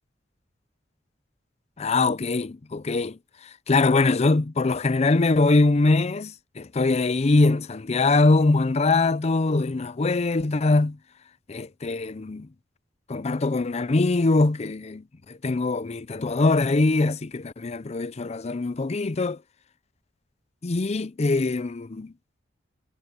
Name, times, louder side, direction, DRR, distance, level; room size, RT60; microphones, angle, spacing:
voice 1, 1.8-3.2 3.7-11.0 11.5-12.5 13.1-19.4 20.6-22.1, left 3 dB, 35° left, 0.5 m, -22 dB
head